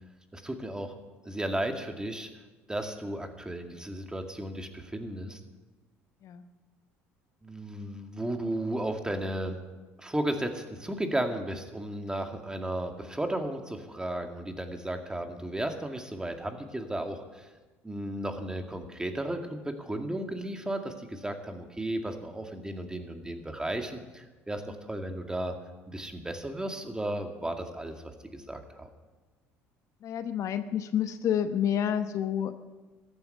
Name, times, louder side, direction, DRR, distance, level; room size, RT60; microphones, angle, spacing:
voice 1, 0.3-1.0 1.2-2.3 2.7-5.4 7.4-9.6 10.0-17.5 17.8-25.6 25.9-28.9, right 1 dB, 10° right, 5 dB, 2.1 m, -34 dB
voice 2, 30.0-32.5, left 9 dB, 55° left, 10 dB, 1.0 m, -29 dB
14.0 x 10.0 x 9.2 m, 1.2 s
supercardioid pair, 75°, 6 cm